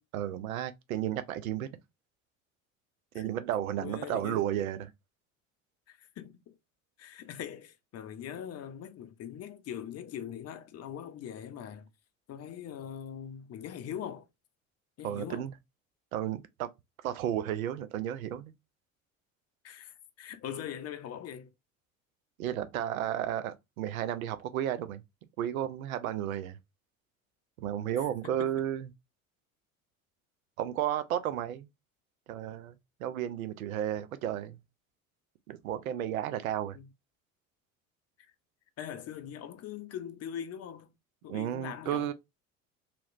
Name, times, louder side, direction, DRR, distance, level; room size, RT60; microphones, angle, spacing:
voice 1, 0.1-1.7 3.1-4.9 15.0-15.5 16.1-16.7 17.0-18.5 22.4-25.0 25.4-26.6 27.6-28.9 30.6-31.7 32.3-34.6 35.5-36.8 41.3-42.1, right 11 dB, 85° right, 0.6 m, -33 dB
voice 2, 3.8-4.5 5.9-6.6 7.0-11.9 12.3-14.3 15.0-15.5 19.6-21.5 28.0-28.6 36.7-36.9 38.8-40.9 41.2-42.1, left 9 dB, 40° left, 0.6 m, -42 dB
2.9 x 2.9 x 2.4 m
hypercardioid pair, 70°, 41 cm